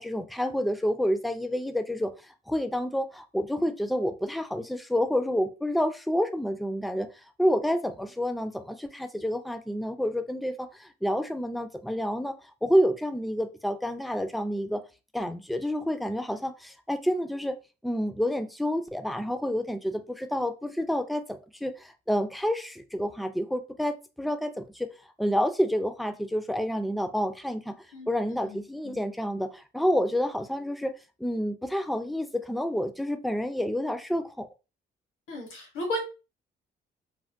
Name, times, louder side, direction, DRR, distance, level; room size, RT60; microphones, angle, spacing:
voice 1, 0.0-12.3 12.6-14.8 15.1-17.6 17.8-21.2 21.6-24.9 25.2-27.7 28.1-30.9 31.2-34.5, equal, ahead, 0.3 m, -29 dB
voice 2, 27.9-29.0 35.3-36.0, equal, 80° left, 1.2 m, -35 dB
3.4 x 2.1 x 2.5 m
cardioid pair, 90°, 20 cm